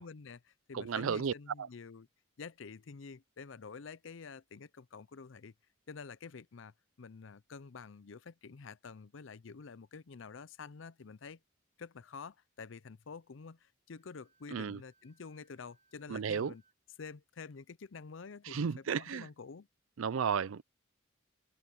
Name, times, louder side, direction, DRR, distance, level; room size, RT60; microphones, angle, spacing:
voice 1, 0.0-2.1 2.4-5.5 5.9-11.4 11.8-16.6 17.0-19.7, left 5 dB, 65° left, 0.6 m, -49 dB
voice 2, 0.7-1.3 1.6-1.7 14.5-14.8 16.1-16.5 18.5-19.3 20.0-20.6, right 6 dB, 80° right, 0.5 m, -33 dB
Wind instrument woodwind instrument, 14.0-16.8, right 4 dB, 35° right, 5.8 m, -74 dB
head